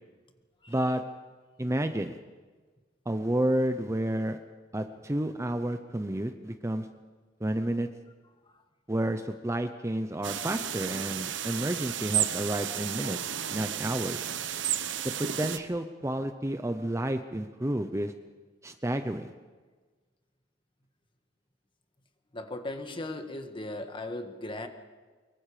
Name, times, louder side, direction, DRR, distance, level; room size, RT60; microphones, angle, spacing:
voice 1, 0.7-1.0 1.6-2.2 3.1-4.4 4.7-6.9 7.4-7.9 8.9-13.2 13.5-14.2 15.2-18.1 18.6-19.3, right 1 dB, 15° right, 8 dB, 0.8 m, -30 dB
sound 1, 10.2-15.6, right 10 dB, 75° right, 1.0 m, -32 dB
voice 2, 22.3-24.7, left 2 dB, 25° left, 6 dB, 1.7 m, -37 dB
25.0 x 22.5 x 5.1 m, 1.4 s
head